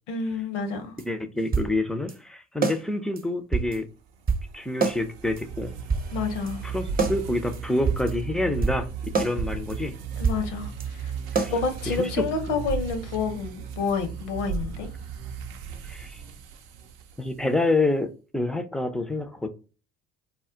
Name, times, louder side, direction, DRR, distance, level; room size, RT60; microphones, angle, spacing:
voice 1, 0.1-1.0 6.1-6.6 10.2-11.1 11.5-14.9, left 4 dB, 80° left, 0.7 m, -29 dB
sound 1, 1.0-1.1 1.4-1.7 2.1-2.2 2.6-2.8 3.2-3.3 3.5-3.8 4.3-4.5 4.8-5.0 5.4-5.5 5.9-6.5 7.0-7.2 7.5-7.6 7.9-8.1 8.6-8.8 9.1-9.3 9.7-9.8 10.1-10.5 10.8-10.9 11.4-11.6, right 5 dB, 25° right, 0.7 m, -25 dB
voice 2, 1.1-3.9 4.5-5.7 6.6-8.9 9.2-10.0 11.3-11.5 11.9-12.2 12.5-12.6 15.8-16.2 17.2-19.5, left 2 dB, ahead, 0.3 m, -27 dB
sound 2, 4.1-17.5, right 6 dB, 75° right, 0.5 m, -35 dB
2.2 x 2.1 x 3.7 m
hypercardioid pair, 60°, 35 cm